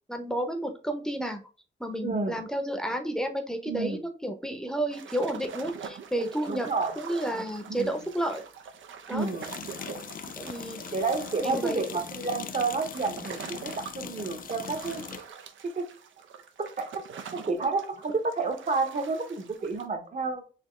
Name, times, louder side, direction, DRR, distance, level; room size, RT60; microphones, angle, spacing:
voice 1, 0.1-1.4 1.8-6.7 7.0-8.4 9.1-9.3 10.4-10.8 11.4-11.8, right 1 dB, 5° left, 5 dB, 0.7 m, -31 dB
voice 2, 2.0-2.4 3.7-4.0 6.5-7.0 7.7-7.9 9.1-9.5 10.9-15.0 15.6-15.9 16.6-17.0 17.3-20.4, right 3 dB, 40° right, 5 dB, 0.9 m, -30 dB
sound 1, 4.9-19.8, right 6 dB, 80° right, 0.5 m, -44 dB
sound 2, 5.7-5.8 9.2-15.3, left 7 dB, 45° left, 0.4 m, -41 dB
4.2 x 2.9 x 3.1 m, 0.36 s
wide cardioid pair, 105°, 20 cm